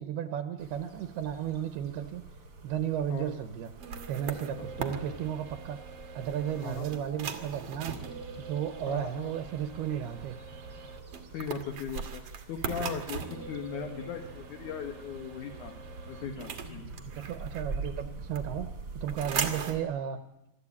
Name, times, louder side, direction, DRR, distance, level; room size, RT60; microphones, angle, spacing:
voice 1, 0.0-2.2 2.6-3.7 4.1-5.8 6.1-7.9 8.4-10.4 17.1-18.7 19.0-20.2, right 9 dB, 80° right, 9 dB, 3.0 m, -34 dB
sound 1, 0.6-19.8, right 3 dB, 30° right, 2.1 m, -46 dB
sound 2, 3.7-18.0 18.4-19.8, right 6 dB, 55° right, 1.9 m, -40 dB
voice 2, 8.9-9.3 11.3-12.2 12.5-15.7 16.1-16.9, left 7 dB, 60° left, 3 dB, 2.5 m, -38 dB
25.0 x 13.0 x 8.6 m, 0.87 s
omnidirectional pair, 4.8 m